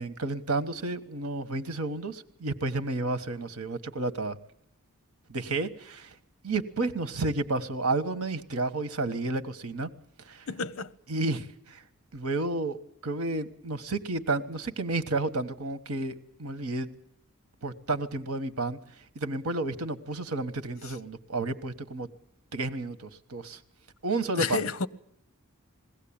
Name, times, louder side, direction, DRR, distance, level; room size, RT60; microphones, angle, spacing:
voice 1, 0.0-4.4 5.3-6.1 6.4-9.9 10.3-10.5 11.1-11.8 12.1-12.8 13.0-16.1 16.4-16.9 17.6-18.8 19.1-22.1 22.5-23.6 24.0-24.6, right 2 dB, 85° right, 1.4 m, -31 dB
voice 2, 10.5-10.9 24.4-24.9, left 4 dB, 65° left, 0.9 m, -30 dB
21.5 x 16.5 x 8.8 m
head